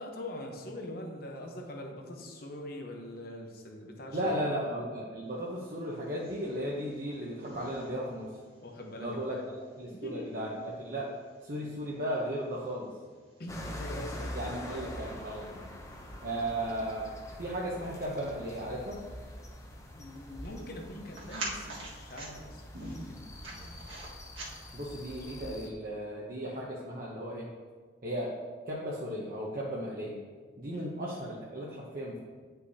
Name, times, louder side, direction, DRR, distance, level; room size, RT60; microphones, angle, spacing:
voice 1, 0.0-4.8 8.6-9.5 9.9-10.5 13.4-14.4 19.9-23.3 30.7-30.9, left 1 dB, 50° left, 2 dB, 0.9 m, -43 dB
voice 2, 4.1-8.3 9.0-9.4 9.8-11.1 11.4-12.9 14.3-15.7 16.2-17.1 17.4-19.0 24.7-27.5 28.0-28.4 28.7-30.2 30.6-32.2, right 1 dB, 45° right, -4 dB, 0.8 m, -35 dB
sound 1, 5.6-25.0, right 2 dB, 85° right, 1.7 m, -49 dB
sound 2, 13.5-25.7, left 1 dB, 15° left, 0.6 m, -44 dB
9.8 x 5.6 x 2.8 m, 1.5 s
head